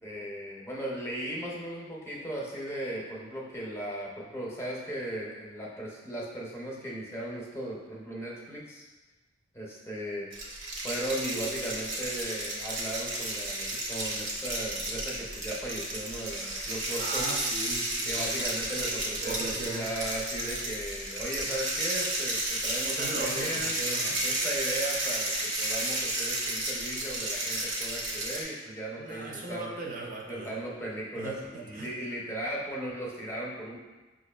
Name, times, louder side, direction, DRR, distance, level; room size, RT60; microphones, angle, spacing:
voice 1, 0.0-8.9 9.5-10.3 10.8-17.3 18.1-23.7 24.2-29.7 30.3-33.8, right 1 dB, 15° left, -4 dB, 0.5 m, -37 dB
sound 1, 10.3-28.4, right 1 dB, 80° right, 0.8 m, -32 dB
voice 2, 17.0-18.3 19.2-19.9 23.0-24.2 29.0-30.6 31.2-31.9, right 2 dB, 45° right, -1 dB, 0.5 m, -38 dB
5.5 x 2.3 x 2.2 m, 1.2 s
head